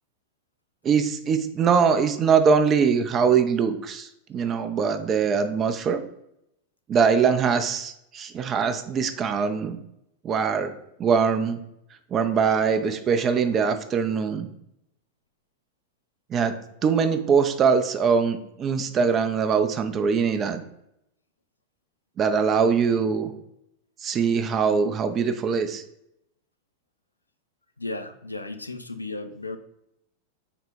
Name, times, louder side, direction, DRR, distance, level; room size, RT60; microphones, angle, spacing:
voice 1, 0.8-6.0 6.9-9.8 10.2-10.7 11.0-11.6 12.1-14.5 16.3-16.5 16.8-20.6 22.2-23.3 24.0-25.8, right 6 dB, 25° right, 9 dB, 0.3 m, -22 dB
voice 2, 27.8-29.6, left 2 dB, 80° left, 8 dB, 0.3 m, -34 dB
3.6 x 2.1 x 4.2 m, 0.80 s
figure-of-eight pair, 90°, 0 cm